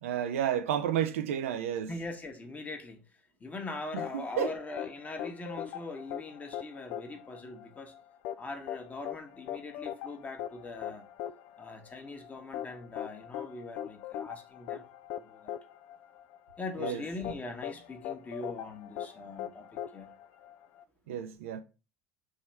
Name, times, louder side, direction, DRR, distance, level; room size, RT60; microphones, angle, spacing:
voice 1, 0.0-1.9 3.9-4.5 16.8-17.0 21.1-21.6, right 9 dB, 65° right, 0.4 m, -31 dB
voice 2, 1.9-3.0 3.4-7.9 8.4-11.0 11.6-14.9 15.2-15.6 16.6-20.1, left 2 dB, 20° left, 1.1 m, -42 dB
sound 1, 4.0-20.8, left 11 dB, 50° left, 0.3 m, -41 dB
3.6 x 3.1 x 4.4 m
figure-of-eight pair, 75°, 8 cm